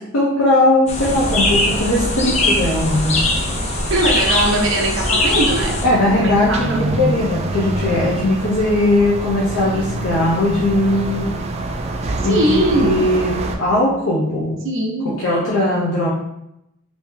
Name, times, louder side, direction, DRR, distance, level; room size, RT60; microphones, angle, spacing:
voice 1, 0.0-3.2 5.8-11.3 12.2-14.6 15.2-16.1, left 1 dB, 70° left, -6 dB, 0.7 m, -18 dB
sound 1, 0.9-5.9, left 2 dB, 35° left, 0.4 m, -21 dB
sound 2, 1.0-13.6, right 2 dB, 30° right, 0.3 m, -26 dB
voice 2, 3.9-5.8 6.1-6.8 12.2-13.1 14.6-15.2, right 1 dB, 70° right, 1 dB, 0.7 m, -20 dB
3.0 x 2.7 x 3.5 m, 0.84 s
head